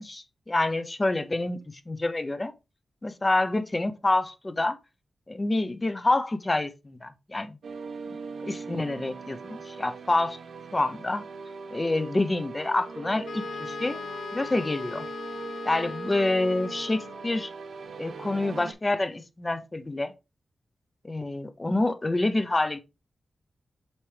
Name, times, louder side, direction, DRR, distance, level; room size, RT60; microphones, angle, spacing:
voice 1, 0.0-2.5 3.0-4.8 5.3-7.6 8.4-10.4 10.7-11.2 11.7-14.0 14.3-15.1 15.7-17.5 18.0-20.1 21.0-22.8, left 2 dB, 20° left, 0.6 m, -27 dB
sound 1, 7.6-18.7, right 4 dB, 70° right, 0.7 m, -40 dB
Wind instrument woodwind instrument, 13.3-17.3, left 6 dB, 65° left, 0.6 m, -39 dB
7.2 x 4.4 x 3.2 m
wide cardioid pair, 170°, 0 cm